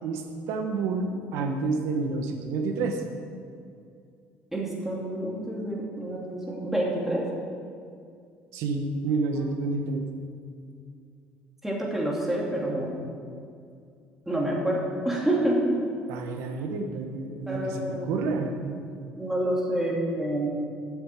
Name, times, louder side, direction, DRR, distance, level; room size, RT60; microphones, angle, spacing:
voice 1, 0.0-3.0 8.5-10.1 16.1-18.8, right 3 dB, 80° right, 4 dB, 1.3 m, -29 dB
voice 2, 4.5-7.3 11.6-13.0 14.3-15.8 17.5-18.3 19.2-20.5, right 1 dB, 5° right, -4 dB, 2.6 m, -28 dB
7.9 x 7.1 x 8.4 m, 2.3 s
cardioid pair, 115°, 5 cm